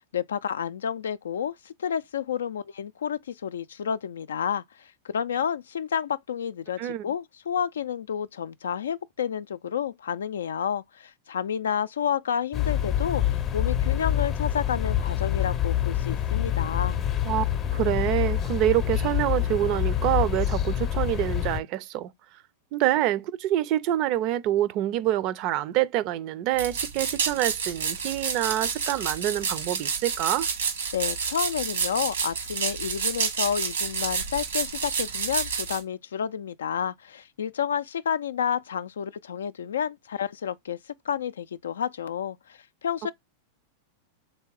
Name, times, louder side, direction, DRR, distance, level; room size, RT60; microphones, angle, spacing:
voice 1, 0.1-17.0 30.9-40.8 41.1-43.1, left 8 dB, 80° left, 0.3 m, -30 dB
sound 1, 12.5-21.6, left 11 dB, 35° left, 0.6 m, -26 dB
voice 2, 17.7-22.1 22.7-30.5, right 13 dB, 50° right, 0.4 m, -26 dB
sound 2, 26.6-35.8, right 6 dB, 85° right, 1.2 m, -29 dB
3.4 x 2.7 x 4.6 m
hypercardioid pair, 105°, 0 cm